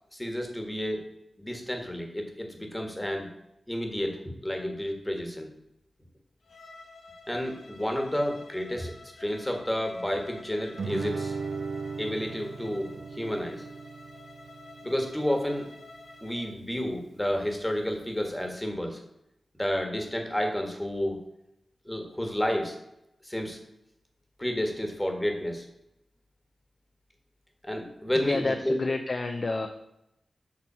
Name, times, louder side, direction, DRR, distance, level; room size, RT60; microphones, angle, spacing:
voice 1, 0.1-1.0 1.4-3.3 3.7-5.5 7.3-11.4 12.0-13.6 14.8-15.7 16.2-19.0 19.6-21.2 21.8-22.8 23.2-23.6 24.4-25.7 27.6-28.7, equal, 10° left, 3 dB, 1.6 m, -31 dB
Bowed string instrument, 6.4-16.5, left 3 dB, 85° left, 1.5 m, -50 dB
Guitar, 10.8-15.8, right 4 dB, 85° right, 0.4 m, -37 dB
voice 2, 28.2-29.7, left 3 dB, 45° left, 4 dB, 0.7 m, -29 dB
7.5 x 6.0 x 5.5 m, 0.84 s
wide cardioid pair, 110°, 0 cm